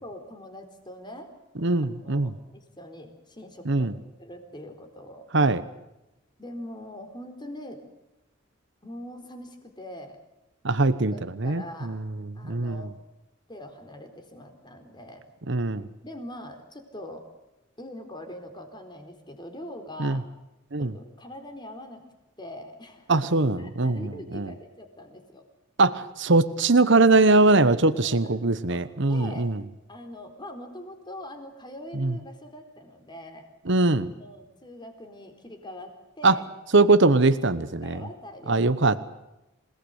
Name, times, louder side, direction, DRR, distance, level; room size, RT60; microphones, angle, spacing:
voice 1, 0.0-1.3 2.0-3.9 4.2-5.3 6.4-7.8 8.8-10.2 10.9-12.0 12.4-13.0 13.5-15.2 16.0-17.3 17.8-20.2 20.8-22.1 22.4-23.2 23.6-25.5 27.6-28.8 29.1-29.5 29.9-33.5 34.1-36.4 37.6-38.7, left 1 dB, 25° left, 5 dB, 4.2 m, -42 dB
voice 2, 1.6-2.3 3.7-3.9 5.3-5.6 10.6-11.1 11.4-12.8 15.5-15.9 20.0-20.2 20.7-20.9 23.1-24.5 25.8-29.6 32.0-32.1 33.7-34.1 36.2-36.4 36.7-38.0 38.5-39.0, right 3 dB, 65° right, 11 dB, 1.1 m, -21 dB
27.5 x 19.0 x 8.3 m, 0.95 s
head